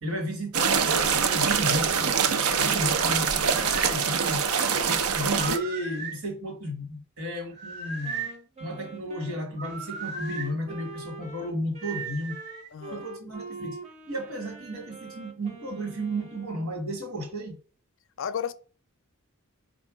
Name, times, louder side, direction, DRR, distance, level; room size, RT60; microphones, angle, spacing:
voice 1, 0.0-2.1 2.5-4.4 4.8-8.3 8.6-12.4 12.9-13.8 14.1-17.6, equal, 70° right, 1.5 m, -33 dB
sound 1, 0.5-5.6, right 6 dB, 85° right, 0.6 m, -24 dB
sound 2, 3.2-4.0 5.3-6.2 7.5-8.4 9.6-10.5 11.8-12.7, right 5 dB, 55° right, 0.9 m, -37 dB
Wind instrument woodwind instrument, 8.0-16.7, right 3 dB, 30° right, 0.7 m, -44 dB
voice 2, 12.7-13.1 13.6-13.7 18.2-18.5, left 8 dB, 60° left, 0.4 m, -33 dB
4.4 x 2.5 x 4.8 m
head